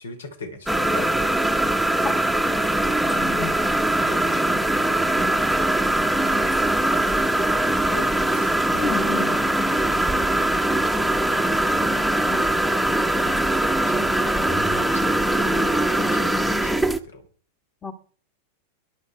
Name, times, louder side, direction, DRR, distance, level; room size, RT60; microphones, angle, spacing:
voice 1, 0.0-1.4 3.0-3.7 4.0-5.9 6.2-10.1 13.1-17.3, left 3 dB, 65° left, 4.2 m, -42 dB
sound 1, 0.7-17.0, right 1 dB, ahead, 1.2 m, -21 dB
voice 2, 3.2-3.5 8.8-9.4 12.3-12.4 14.0-14.1 16.0-16.1 17.8-17.9, left 5 dB, 15° left, 2.0 m, -31 dB
21.5 x 11.5 x 4.8 m
figure-of-eight pair, 90°, 0 cm